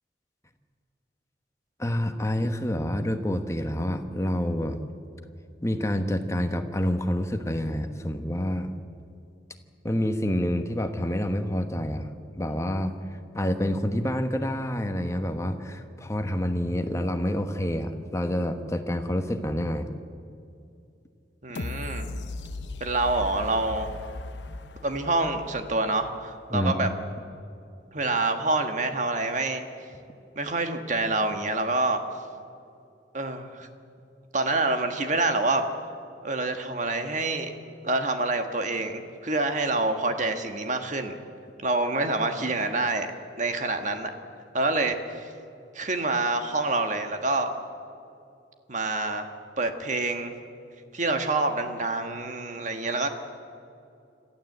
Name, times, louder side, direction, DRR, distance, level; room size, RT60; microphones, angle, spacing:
voice 1, 1.8-4.8 5.6-8.7 9.8-12.1 12.4-13.0 13.3-19.9 26.5-27.0, left 1 dB, 15° left, 7 dB, 1.2 m, -28 dB
voice 2, 21.4-22.1 22.8-23.9 24.8-26.9 27.9-29.6 30.3-32.0 33.1-33.7 34.3-35.6 36.2-37.6 37.8-41.2 41.6-43.1 43.4-44.1 44.5-45.3 45.7-47.5 48.7-49.3 49.6-50.3 50.9-53.1, right 2 dB, 40° right, 6 dB, 1.6 m, -27 dB
sound 1, 21.5-26.4 26.9-27.0, left 2 dB, 75° left, 0.8 m, -38 dB
26.5 x 14.0 x 8.0 m, 2.5 s
head